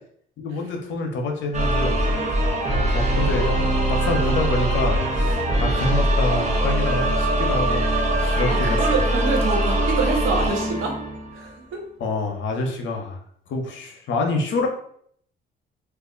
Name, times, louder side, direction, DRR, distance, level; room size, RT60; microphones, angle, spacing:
voice 1, 0.4-2.0 2.7-9.0 12.0-13.2 13.5-14.7, left 2 dB, 70° left, 3 dB, 0.7 m, -27 dB
sound 1, 1.5-11.5, right 1 dB, 35° right, 0.9 m, -22 dB
voice 2, 8.2-10.9 11.3-11.8, right 4 dB, 85° right, 2 dB, 0.8 m, -26 dB
2.4 x 2.1 x 3.7 m, 0.64 s
cardioid pair, 90°, 20 cm